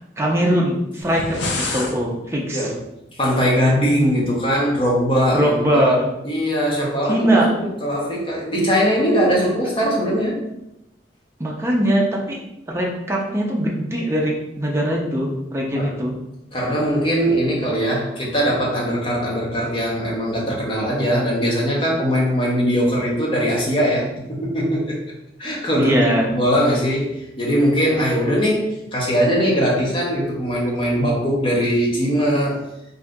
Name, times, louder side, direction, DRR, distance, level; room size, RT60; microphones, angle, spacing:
voice 1, 0.2-2.7 5.3-6.1 7.1-7.5 11.4-12.4 12.7-16.1 25.8-26.3, equal, 15° right, -2 dB, 0.5 m, -21 dB
sound 1, 1.0-2.0, left 3 dB, 90° left, 0.5 m, -26 dB
voice 2, 3.2-6.0 6.2-10.4 15.8-15.9 16.5-25.0 25.4-26.0 26.3-32.6, equal, 30° left, -4 dB, 0.8 m, -20 dB
2.7 x 2.5 x 3.4 m, 0.87 s
head